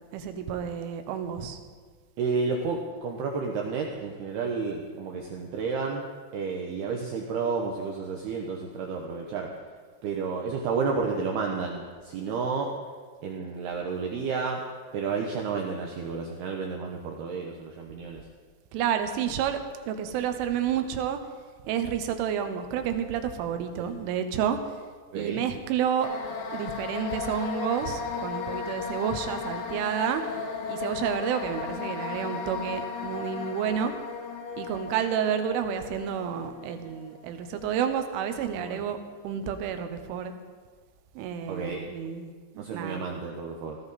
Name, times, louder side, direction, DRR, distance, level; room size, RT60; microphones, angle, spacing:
voice 1, 0.1-1.6 18.7-21.2 21.6-24.6 25.2-26.1 26.5-30.2 30.7-33.9 34.6-39.0 39.2-40.3 41.2-43.0, right 8 dB, 90° right, 8 dB, 3.5 m, -30 dB
voice 2, 2.2-6.1 6.3-9.5 10.0-12.7 13.2-14.6 14.9-18.2 23.8-23.9 25.1-25.4 38.6-38.8 41.5-41.9 42.6-43.8, right 5 dB, 70° right, 1 dB, 2.7 m, -31 dB
sound 1, 26.0-37.9, left 5 dB, 65° left, 3.5 m, -35 dB
17.5 x 15.0 x 4.2 m, 1.6 s
omnidirectional pair, 5.5 m